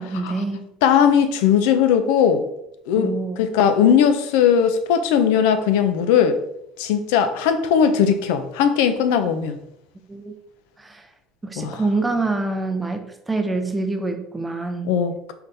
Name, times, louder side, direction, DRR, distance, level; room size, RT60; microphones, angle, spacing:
voice 1, 0.0-0.6 3.0-3.5 10.1-10.3 10.8-11.1 11.4-14.9, right 3 dB, 10° right, 6 dB, 0.5 m, -26 dB
voice 2, 0.8-2.4 2.9-3.1 3.4-6.4 6.8-9.6 11.6-11.8 14.8-15.3, left 8 dB, 85° left, 9 dB, 0.5 m, -18 dB
3.8 x 3.3 x 4.1 m, 0.82 s
cardioid pair, 155°, 0 cm